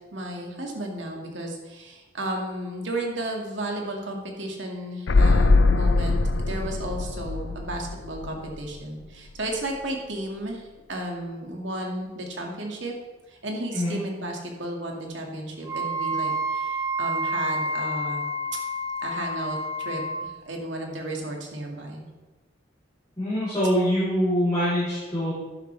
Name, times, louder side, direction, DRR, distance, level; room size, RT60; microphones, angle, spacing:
voice 1, 0.1-12.9 13.3-18.2 19.0-22.0, right 1 dB, 75° right, 0 dB, 2.1 m, -33 dB
sound 1, 5.1-8.8 9.1-9.2, left 3 dB, 80° left, 0.6 m, -22 dB
Wind instrument woodwind instrument, 15.7-20.2, right 1 dB, 15° right, 0.8 m, -29 dB
voice 2, 23.2-25.3, equal, 20° left, -12 dB, 4.1 m, -24 dB
12.0 x 10.0 x 3.4 m, 1.2 s
head